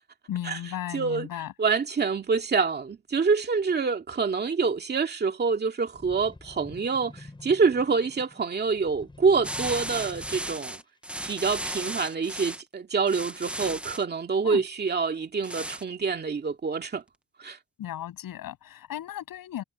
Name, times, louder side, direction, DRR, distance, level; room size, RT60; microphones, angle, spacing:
voice 1, 0.3-1.5 14.4-14.6 17.8-19.6, left 12 dB, 75° left, 7.6 m, -35 dB
voice 2, 0.9-1.3 1.6-10.8 11.2-17.0 17.4-17.6, right 5 dB, 30° right, 2.3 m, -26 dB
sound 1, 5.9-10.8 11.4-11.5, left 2 dB, 15° left, 7.5 m, -47 dB
sound 2, 9.4-12.6 13.1-14.0 15.4-15.8, right 1 dB, 5° right, 0.8 m, -35 dB
cardioid pair, 155°, 35 cm